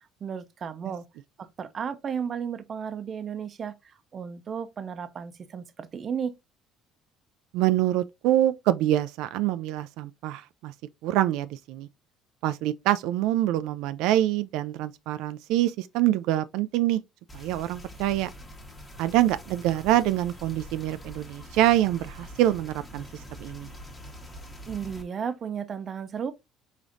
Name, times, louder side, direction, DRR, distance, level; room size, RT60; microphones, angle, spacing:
voice 1, 0.2-1.0 1.4-6.3 24.7-26.3, right 7 dB, 30° right, 0.6 m, -34 dB
voice 2, 7.5-10.7 11.0-11.9 12.4-17.0 17.3-18.3 19.0-23.7, right 14 dB, 75° right, 0.3 m, -25 dB
sound 1, 17.3-25.0, equal, 15° left, 1.1 m, -44 dB
5.1 x 3.6 x 2.6 m
cardioid pair, 160°, 0 cm